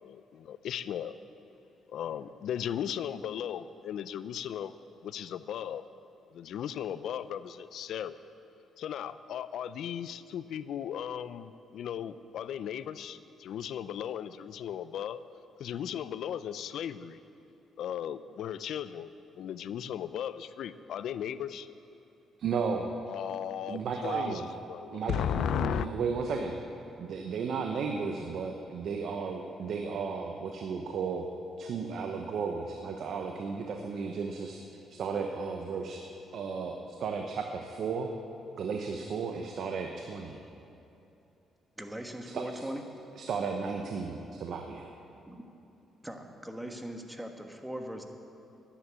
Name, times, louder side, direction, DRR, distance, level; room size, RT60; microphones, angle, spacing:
voice 1, 0.0-1.1 1.9-4.7 5.0-5.8 6.3-8.2 8.8-15.2 15.6-17.2 17.8-19.1 19.4-21.7 23.1-24.4 24.7-25.9, left 9 dB, 75° left, 14 dB, 0.5 m, -36 dB
voice 2, 22.4-22.9 23.7-24.5 24.9-26.6 27.0-31.3 31.6-34.6 34.9-36.0 36.3-38.1 38.6-40.4 42.3-42.6 43.2-44.9, right 5 dB, 65° right, 3 dB, 0.9 m, -34 dB
voice 3, 41.8-42.8 45.3-45.4 46.0-48.0, right 1 dB, 5° right, 4 dB, 1.4 m, -40 dB
11.0 x 10.0 x 8.4 m, 2.8 s
cardioid pair, 90°, 0 cm